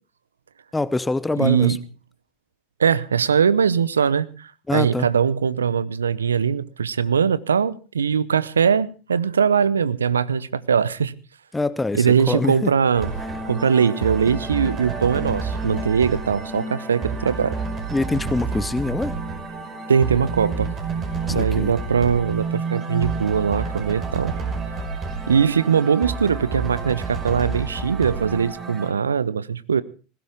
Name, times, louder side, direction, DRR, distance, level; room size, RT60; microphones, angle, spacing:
voice 1, 0.7-1.8 4.7-5.1 11.5-12.7 17.9-19.2 21.3-21.7, left 2 dB, 10° left, 0.8 m, -24 dB
voice 2, 1.4-1.8 2.8-11.1 11.9-13.1 13.5-17.6 19.9-20.7 21.3-24.3 25.3-29.8, right 7 dB, 80° right, 0.7 m, -21 dB
sound 1, 12.9-28.9, right 4 dB, 35° right, 5.1 m, -29 dB
20.0 x 16.5 x 3.6 m
figure-of-eight pair, 80°, 0 cm